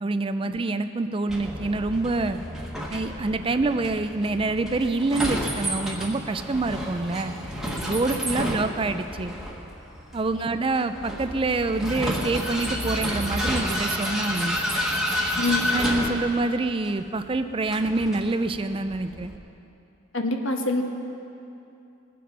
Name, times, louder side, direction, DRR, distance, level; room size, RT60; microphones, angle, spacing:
voice 1, 0.0-2.4 2.9-7.3 7.9-9.3 10.1-14.6 15.7-19.3, right 3 dB, 25° right, 10 dB, 0.4 m, -26 dB
Vehicle, 1.3-19.4, equal, ahead, 1.3 m, -30 dB
voice 2, 15.4-15.7 20.1-20.8, left 2 dB, 70° left, 3 dB, 1.3 m, -25 dB
21.0 x 7.7 x 5.4 m, 2.7 s
head